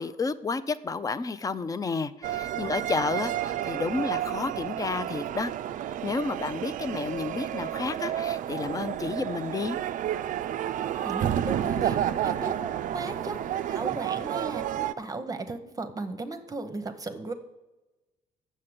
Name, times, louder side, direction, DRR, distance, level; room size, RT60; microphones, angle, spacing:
voice 1, 0.0-5.5 6.0-9.8, left 4 dB, 20° left, 14 dB, 0.5 m, -31 dB
sound 1, 2.2-14.9, right 11 dB, 50° right, 0.4 m, -30 dB
voice 2, 11.0-13.4 13.7-17.3, right 2 dB, 20° right, 8 dB, 0.8 m, -36 dB
7.4 x 6.7 x 7.9 m, 1.0 s
cardioid pair, 110°, 17 cm